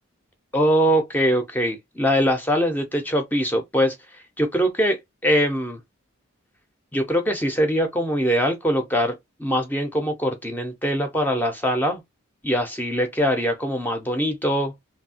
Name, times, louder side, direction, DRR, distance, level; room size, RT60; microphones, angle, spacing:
voice 1, 0.5-4.0 4.4-5.8 6.9-12.0 12.4-14.7, equal, 10° left, 0.4 m, -22 dB
2.7 x 2.6 x 2.7 m
head